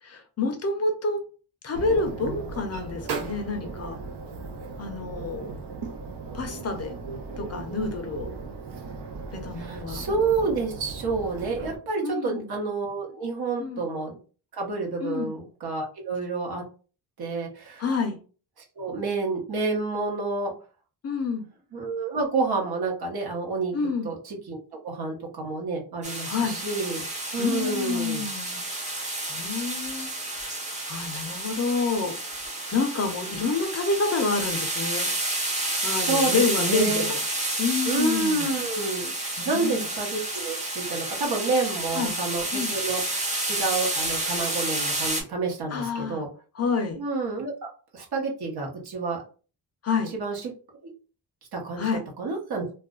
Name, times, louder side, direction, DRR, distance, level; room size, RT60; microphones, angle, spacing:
voice 1, 0.0-1.2 1.6-4.0 4.8-5.6 6.3-7.0 7.4-8.3 9.3-10.1 12.0-12.5 13.6-13.8 15.0-15.3 17.8-18.2 21.0-21.5 23.7-24.1 26.3-26.6 27.4-30.6 30.8-32.2 32.7-35.1 35.8-37.2 37.6-38.5 39.4-39.9 41.9-42.2 42.5-42.7 45.7-46.2 46.6-47.0 49.8-50.1 51.8-52.0, left 4 dB, 40° left, 5 dB, 0.4 m, -28 dB
sound 1, 1.7-11.8, right 4 dB, 80° right, 0.7 m, -37 dB
voice 2, 9.6-14.2 14.5-16.6 17.2-17.8 18.8-20.5 21.7-23.7 24.0-24.6 24.8-28.2 35.8-37.1 37.8-46.3 47.0-47.5 47.9-49.2 50.1-50.5 50.8-50.9 51.5-51.8 52.2-52.7, right 3 dB, 65° right, 0 dB, 1.0 m, -29 dB
sound 2, 26.0-45.2, right 2 dB, 20° right, 0.6 m, -30 dB
2.3 x 2.1 x 3.6 m, 0.37 s
wide cardioid pair, 175°, 41 cm